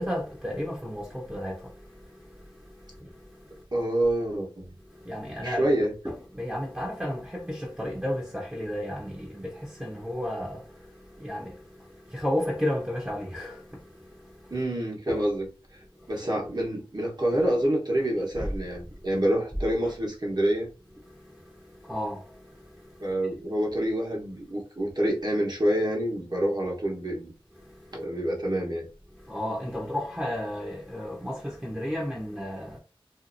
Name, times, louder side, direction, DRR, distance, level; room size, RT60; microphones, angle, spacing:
voice 1, 0.0-3.6 4.8-5.7 6.0-14.6 15.1-15.2 15.9-16.2 17.3-17.4 18.4-18.5 18.9-19.1 19.8-19.9 21.0-23.1 27.5-28.1 29.1-32.8, left 1 dB, 15° right, 0.7 m, -34 dB
voice 2, 3.7-4.7 5.4-5.9 14.5-15.5 16.1-20.7 23.0-27.3 27.9-28.9, right 1 dB, 50° right, 1.0 m, -27 dB
2.7 x 2.4 x 2.5 m
wide cardioid pair, 55°, 9 cm